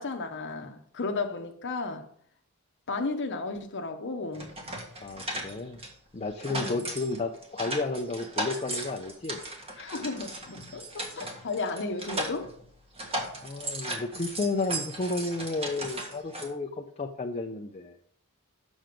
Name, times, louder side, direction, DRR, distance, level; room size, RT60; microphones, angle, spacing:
voice 1, 0.0-2.1 2.9-4.5 6.5-6.8 9.8-12.5, left 3 dB, 55° left, 0.9 m, -34 dB
sound 1, 4.3-5.9 6.3-12.7 12.9-16.5, right 1 dB, 25° right, 1.7 m, -36 dB
voice 2, 5.0-5.8 6.1-9.4 13.4-18.0, left 3 dB, 30° left, 0.6 m, -32 dB
7.6 x 6.2 x 5.1 m
head